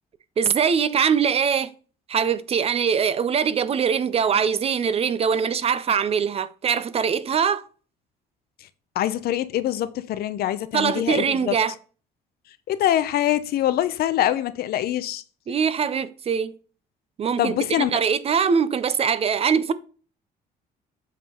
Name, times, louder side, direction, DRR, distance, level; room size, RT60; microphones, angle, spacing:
voice 1, 0.4-1.7 2.1-7.6 10.7-11.7 15.5-16.5 17.2-19.7, right 7 dB, 35° right, 0.5 m, -22 dB
voice 2, 9.0-11.6 12.7-15.2 17.4-17.9, left 12 dB, 65° left, 0.6 m, -24 dB
7.4 x 3.8 x 4.3 m
cardioid pair, 110°, 17 cm